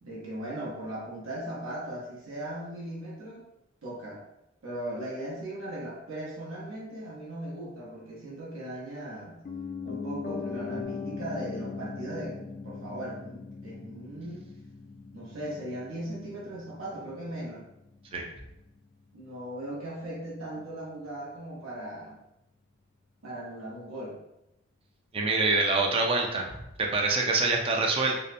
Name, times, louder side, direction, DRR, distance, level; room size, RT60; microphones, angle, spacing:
voice 1, 0.0-3.4 3.8-4.2 4.6-9.4 9.8-12.4 12.6-14.5 15.1-17.6 19.1-22.2 23.2-24.2, right 1 dB, 80° right, -6 dB, 0.7 m, -38 dB
Piano, 9.4-19.4 19.7-19.8, left 5 dB, 45° left, 0.3 m, -40 dB
voice 2, 25.1-26.5 26.8-28.2, right 3 dB, 30° right, 0 dB, 0.4 m, -25 dB
2.7 x 2.0 x 2.5 m, 0.88 s
head